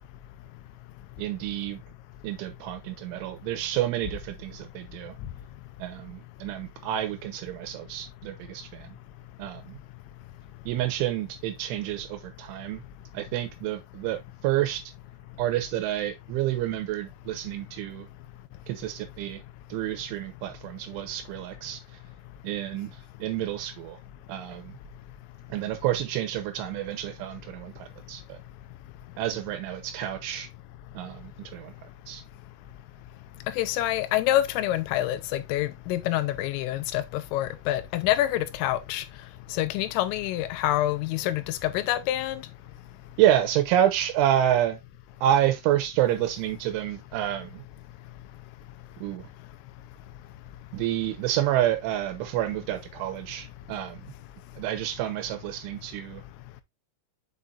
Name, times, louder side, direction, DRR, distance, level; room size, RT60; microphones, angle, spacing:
voice 1, 1.2-1.8 2.2-5.2 5.8-9.0 9.4-9.8 10.7-12.8 13.1-14.8 15.4-18.1 18.7-19.4 19.7-21.8 22.4-24.0 24.3-24.8 25.5-28.4 29.2-30.5 30.9-31.7 32.1-32.2 43.2-44.8 45.2-47.6 49.0-49.3 50.7-54.0 54.6-56.2, right 12 dB, 80° right, 3.1 m, -28 dB
voice 2, 33.6-39.0 39.5-42.4, left 14 dB, 85° left, 3.1 m, -27 dB
7.2 x 5.6 x 2.5 m
omnidirectional pair, 5.9 m